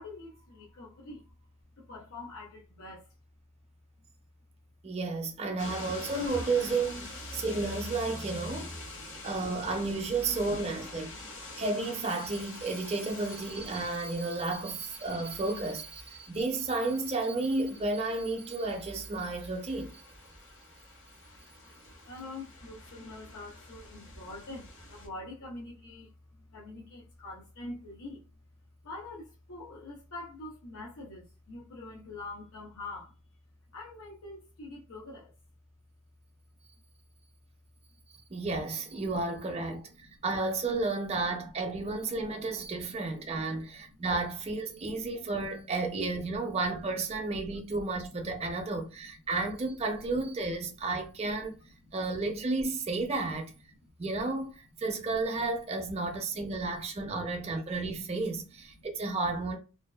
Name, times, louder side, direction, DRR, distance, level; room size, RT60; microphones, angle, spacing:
voice 1, 0.0-1.3 1.8-3.1 4.0-4.1 8.8-9.0 11.4-11.6 22.0-28.2 28.8-33.2 33.7-35.3 39.0-39.1 40.0-40.1 43.2-44.1 44.9-45.0 51.6-52.0 53.8-53.9 56.6-56.7 57.7-57.8 58.7-58.9, left 2 dB, 85° left, 0.7 m, -45 dB
voice 2, 4.8-8.7 9.2-11.1 11.6-20.0 38.3-39.9 40.2-51.6 51.9-53.5 54.0-59.6, right 3 dB, 30° right, 0.5 m, -32 dB
sound 1, 5.6-25.1, left 1 dB, 65° left, 1.2 m, -45 dB
2.6 x 2.2 x 2.2 m
head